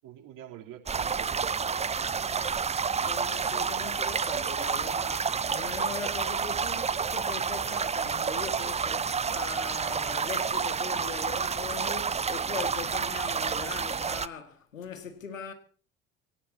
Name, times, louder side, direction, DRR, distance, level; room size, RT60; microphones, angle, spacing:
voice 1, 0.0-2.6, right 10 dB, 55° right, 3.4 m, -47 dB
sound 1, 0.9-14.3, right 6 dB, 15° right, 0.7 m, -29 dB
voice 2, 3.0-15.5, left 6 dB, 85° left, 2.1 m, -40 dB
23.5 x 18.0 x 2.8 m
figure-of-eight pair, 60°, 38 cm